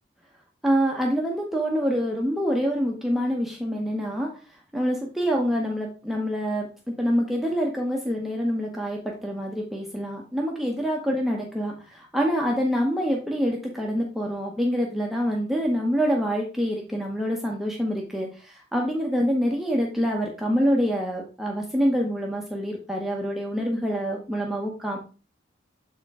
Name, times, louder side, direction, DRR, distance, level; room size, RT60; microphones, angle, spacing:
voice 1, 0.6-4.3 4.7-25.0, equal, ahead, -1 dB, 0.9 m, -26 dB
7.0 x 4.4 x 3.5 m, 0.34 s
head